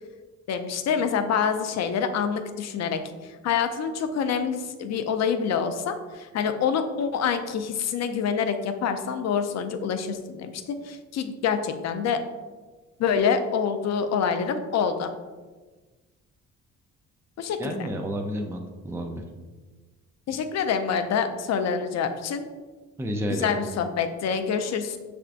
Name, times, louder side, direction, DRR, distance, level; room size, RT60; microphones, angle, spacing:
voice 1, 0.5-3.0 3.4-12.2 13.0-15.1 17.4-17.8 20.3-22.5 23.4-25.0, left 6 dB, 60° left, 8 dB, 0.5 m, -26 dB
voice 2, 17.6-19.2 23.0-23.6, equal, 10° right, 3 dB, 0.5 m, -30 dB
5.8 x 3.4 x 2.5 m, 1.3 s
cardioid pair, 90°, 30 cm